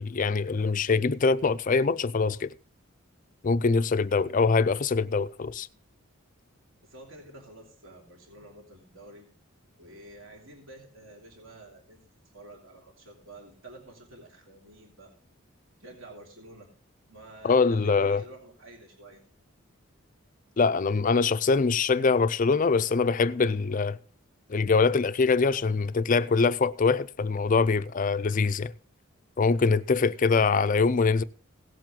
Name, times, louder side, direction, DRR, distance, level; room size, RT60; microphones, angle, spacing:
voice 1, 0.0-2.5 3.4-5.7 17.4-18.2 20.6-24.0 24.5-28.7 29.4-31.2, left 4 dB, 40° left, 0.4 m, -23 dB
voice 2, 6.8-9.3 9.8-15.1 15.8-16.7 17.1-19.2 29.8-30.1, right 2 dB, 70° right, 3.1 m, -49 dB
17.0 x 7.5 x 3.8 m
head